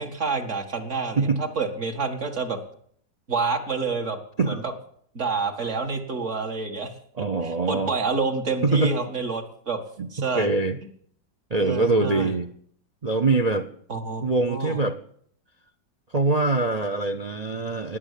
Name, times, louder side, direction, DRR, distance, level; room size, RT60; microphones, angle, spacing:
voice 1, 0.0-2.6 3.3-4.2 4.4-4.6 5.2-6.9 7.2-9.8 10.1-10.5 11.6-12.3 13.9-14.8, right 4 dB, 40° right, 4 dB, 2.1 m, -28 dB
voice 2, 7.2-7.9 8.6-9.0 10.0-10.8 11.5-12.5 13.0-13.7 14.2-15.0 16.1-18.0, right 3 dB, 60° right, 10 dB, 0.4 m, -23 dB
18.5 x 8.8 x 8.3 m, 0.63 s
omnidirectional pair, 1.9 m